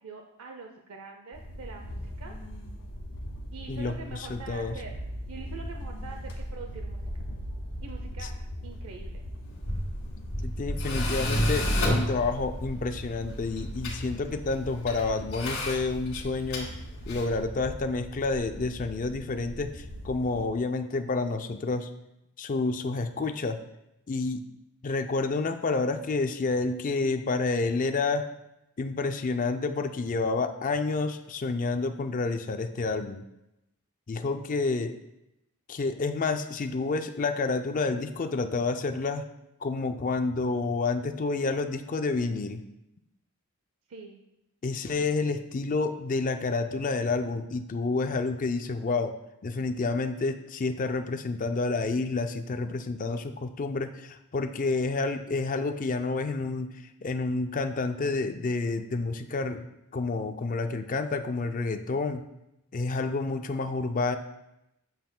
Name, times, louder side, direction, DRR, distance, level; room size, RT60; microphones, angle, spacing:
voice 1, 0.0-2.4 3.5-4.9 5.3-7.0 7.8-8.3 8.6-9.2 43.9-44.2, right 4 dB, 70° right, 3 dB, 0.6 m, -44 dB
sound 1, 1.3-20.5, equal, 80° left, 1.3 m, -40 dB
voice 2, 3.7-4.8 8.2-8.3 10.4-16.7 17.1-21.9 22.4-23.6 24.1-24.4 24.8-28.3 28.8-33.2 34.1-35.0 35.7-39.2 39.6-42.6 44.6-49.2 49.4-56.7 57.0-59.6 59.9-62.2 62.7-64.2, left 3 dB, 35° left, 8 dB, 0.4 m, -29 dB
Tools, 9.4-17.4, left 1 dB, 65° left, 2.1 m, -32 dB
7.8 x 7.2 x 2.2 m, 0.87 s
head